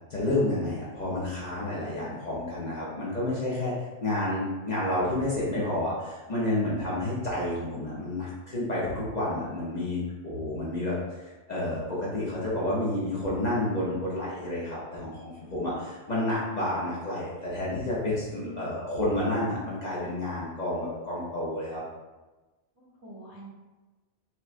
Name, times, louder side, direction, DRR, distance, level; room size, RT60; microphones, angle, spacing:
voice 1, 0.1-3.7 4.0-21.8, left 1 dB, 45° left, -8 dB, 0.7 m, -30 dB
voice 2, 18.2-18.7 22.7-23.5, right 3 dB, 35° right, -8 dB, 1.0 m, -46 dB
4.4 x 2.2 x 2.4 m, 1.2 s
omnidirectional pair, 1.2 m